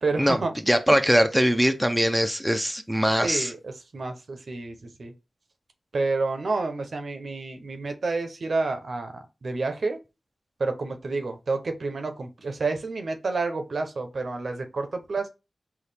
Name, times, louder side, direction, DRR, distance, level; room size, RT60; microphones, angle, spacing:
voice 1, 0.0-0.5 3.2-5.1 5.9-9.1 9.4-10.0 10.6-15.3, right 3 dB, 70° right, 0.7 m, -29 dB
voice 2, 0.7-3.5, equal, 5° right, 0.6 m, -21 dB
4.1 x 2.3 x 3.3 m
cardioid pair, 45°, 0 cm